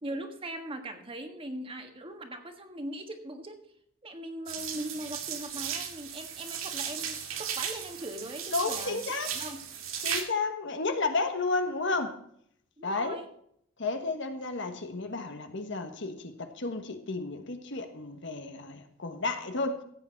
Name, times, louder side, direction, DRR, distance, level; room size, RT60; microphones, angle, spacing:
voice 1, 0.0-3.6 4.0-9.0 9.3-9.6 12.8-13.3, right 1 dB, 25° right, 1.6 m, -40 dB
sound 1, 4.5-10.2, right 8 dB, 85° right, 2.1 m, -36 dB
voice 2, 8.5-9.3 10.0-12.2 12.8-13.2 13.8-19.8, left 3 dB, 60° left, 1.4 m, -32 dB
15.0 x 8.8 x 4.6 m
head